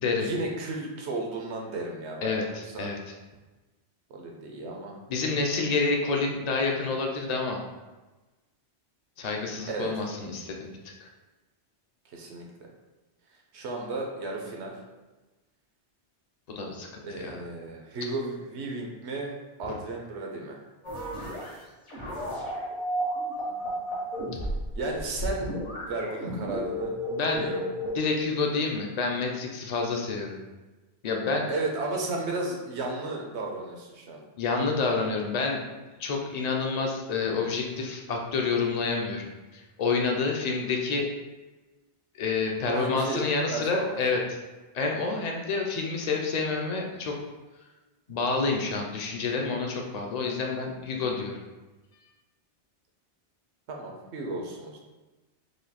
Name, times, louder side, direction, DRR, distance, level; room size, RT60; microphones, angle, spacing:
voice 1, 0.2-2.3 2.7-2.9 4.1-5.0 9.7-9.9 12.1-12.4 13.5-14.7 17.0-20.6 24.7-25.5 25.9-27.6 31.5-34.2 42.7-43.2 43.5-44.0 44.9-45.0 53.7-54.8, right 2 dB, 75° right, 0 dB, 1.1 m, -34 dB
voice 2, 2.2-3.0 5.1-7.6 9.2-10.7 11.0-11.1 16.5-17.4 19.7-19.8 27.1-27.4 27.8-30.4 31.0-31.5 34.4-35.6 36.0-39.3 39.5-41.1 42.2-44.4 44.7-47.2 48.1-51.4, left 4 dB, 45° left, 1 dB, 0.6 m, -28 dB
sound 1, 20.8-21.5 21.9-28.0, equal, 70° left, 1.8 m, -32 dB
4.9 x 2.4 x 4.1 m, 1.2 s
omnidirectional pair, 1.2 m